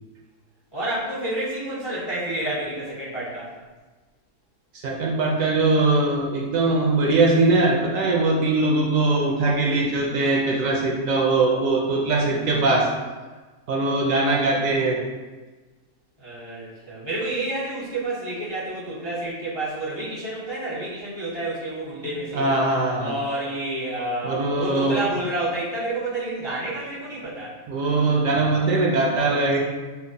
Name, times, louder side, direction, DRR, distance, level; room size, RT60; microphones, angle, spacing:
voice 1, 0.7-3.5 16.2-22.5 23.0-27.5, right 1 dB, 25° left, -8 dB, 0.6 m, -29 dB
voice 2, 4.8-12.9 13.7-15.0 22.3-23.2 24.2-25.0 27.7-29.6, right 2 dB, 70° right, -2 dB, 0.9 m, -21 dB
5.6 x 2.0 x 2.6 m, 1.3 s
omnidirectional pair, 1.6 m